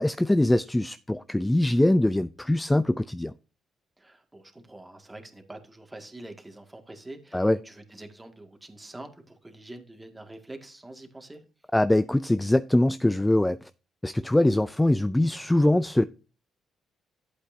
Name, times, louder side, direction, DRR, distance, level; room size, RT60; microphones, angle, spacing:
voice 1, 0.0-3.3 7.3-7.6 11.7-13.6 14.0-16.0, left 1 dB, 10° left, 0.4 m, -22 dB
voice 2, 4.0-11.4, right 1 dB, 15° right, 2.0 m, -45 dB
11.5 x 8.3 x 2.7 m
cardioid pair, 90°, 0 cm